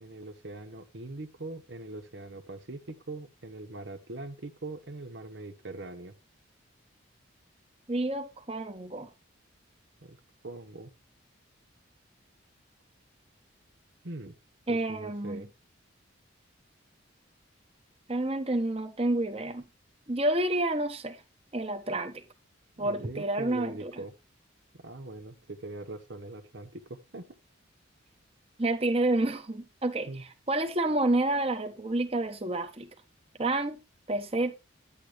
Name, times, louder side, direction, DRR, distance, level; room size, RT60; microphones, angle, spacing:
voice 1, 0.0-6.1 10.0-10.2 10.4-10.9 14.0-14.3 14.7-15.5 22.8-24.1 24.8-27.2 30.1-30.2, right 2 dB, 60° right, 1.0 m, -42 dB
voice 2, 7.9-9.1 14.7-15.4 18.1-19.6 20.1-21.2 21.5-22.2 22.8-23.9 28.6-32.9 33.4-33.8 34.1-34.5, right 2 dB, 30° right, 1.2 m, -29 dB
10.0 x 8.5 x 3.2 m
head